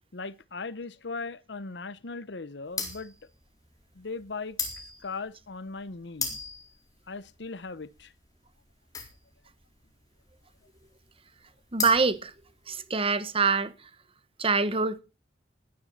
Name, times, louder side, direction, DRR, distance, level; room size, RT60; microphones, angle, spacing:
voice 1, 0.1-3.1 4.0-4.6 5.0-6.4 7.1-8.1, left 4 dB, 70° left, 0.9 m, -38 dB
sound 1, 2.7-13.0, left 4 dB, 20° left, 4.4 m, -38 dB
voice 2, 11.7-12.3 12.7-13.7 14.4-15.0, right 4 dB, 30° right, 1.2 m, -25 dB
19.5 x 10.5 x 4.2 m
head